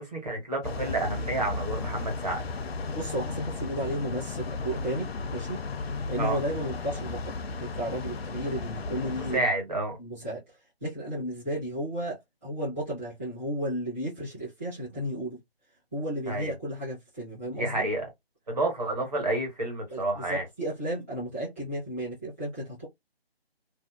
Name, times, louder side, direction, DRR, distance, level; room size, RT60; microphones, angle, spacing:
voice 1, 0.0-2.4 6.2-6.4 8.9-10.0 16.3-16.5 17.6-18.1 18.5-20.5, right 2 dB, 40° right, 1.2 m, -30 dB
sound 1, 0.6-9.4, left 3 dB, 75° left, 0.5 m, -35 dB
voice 2, 2.9-5.6 6.1-9.4 10.0-10.4 10.8-15.4 15.9-17.8 19.9-22.9, equal, 15° right, 0.7 m, -33 dB
2.6 x 2.2 x 2.3 m
figure-of-eight pair, 170°, 31 cm